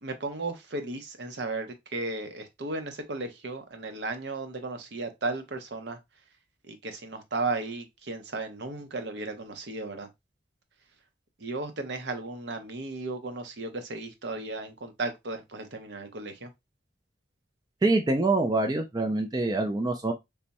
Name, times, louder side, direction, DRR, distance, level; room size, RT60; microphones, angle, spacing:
voice 1, 0.0-6.0 6.7-10.1 11.4-16.5, right 3 dB, 65° right, 0.7 m, -35 dB
voice 2, 17.8-20.1, right 2 dB, 20° right, 0.3 m, -25 dB
3.4 x 2.0 x 4.0 m
head